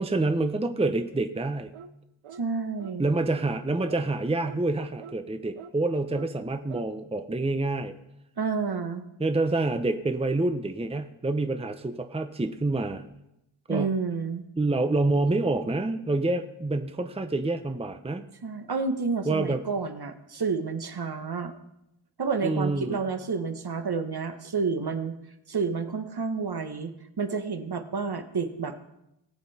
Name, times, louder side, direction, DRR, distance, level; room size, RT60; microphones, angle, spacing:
voice 1, 0.0-1.7 3.0-7.9 9.2-13.0 13.7-13.9 14.6-18.2 19.3-19.6 22.4-23.0, right 2 dB, 10° right, 7 dB, 0.8 m, -27 dB
sound 1, 1.7-2.0 2.2-2.5 2.8-3.0 3.3-3.5 3.9-4.0 4.4-4.6 5.0-5.2 5.6-5.7 6.1-6.3 6.7-6.9, right 6 dB, 90° right, 0.7 m, -44 dB
voice 2, 2.3-3.1 8.4-9.1 13.7-14.4 18.4-21.5 22.2-25.2 25.5-28.8, right 5 dB, 50° right, 7 dB, 1.3 m, -30 dB
18.5 x 7.7 x 4.2 m, 0.86 s
cardioid pair, 60°, 48 cm